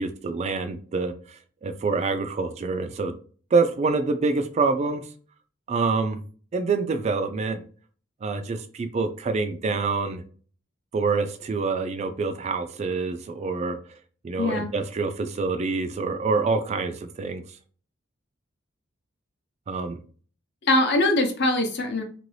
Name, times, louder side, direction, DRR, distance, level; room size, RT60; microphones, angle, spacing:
voice 1, 0.0-3.2 3.5-5.0 5.7-6.2 6.5-7.6 8.2-10.2 10.9-13.8 14.2-17.4 19.7-20.0, right 4 dB, 35° right, 8 dB, 0.3 m, -26 dB
voice 2, 14.4-14.7 20.7-22.0, left 2 dB, 55° left, 4 dB, 0.7 m, -22 dB
3.0 x 2.6 x 3.2 m, 0.42 s
head